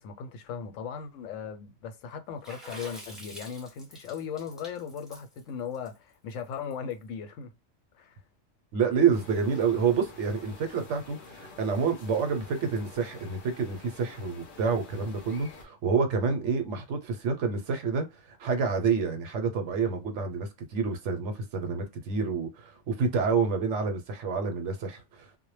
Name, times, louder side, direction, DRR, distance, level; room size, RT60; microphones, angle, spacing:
voice 1, 0.0-7.5 7.9-8.2, left 7 dB, 90° left, 0.9 m, -38 dB
Water / Splash splatter, 2.4-6.9, equal, ahead, 0.5 m, -47 dB
voice 2, 8.7-25.3, right 5 dB, 70° right, 0.9 m, -28 dB
sound 1, 9.1-15.7, left 3 dB, 55° left, 0.7 m, -49 dB
2.1 x 2.0 x 3.0 m
omnidirectional pair, 1.3 m